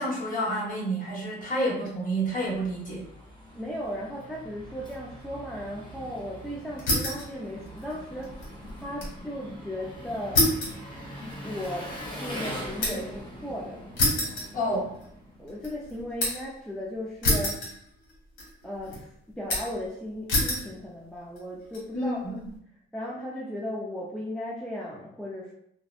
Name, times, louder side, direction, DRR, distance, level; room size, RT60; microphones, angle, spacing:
voice 1, 0.0-3.1 14.5-14.9 21.9-22.5, right 1 dB, 40° left, -5 dB, 1.2 m, -29 dB
Engine, 2.0-15.6, equal, 20° left, 0.9 m, -42 dB
voice 2, 3.5-8.4 8.8-10.5 11.4-13.9 15.4-17.6 18.6-22.2 22.9-25.5, equal, 5° left, -4 dB, 0.4 m, -36 dB
sound 1, 6.8-7.3 7.7-9.2 9.5-9.6 10.3-13.2 14.0-15.1 15.5-16.5 17.2-18.1 18.4-19.0 19.5-19.9 20.3-20.7 21.4-21.8, left 1 dB, 75° left, 1.1 m, -28 dB
2.6 x 2.1 x 2.4 m, 0.72 s
cardioid pair, 90°, 20 cm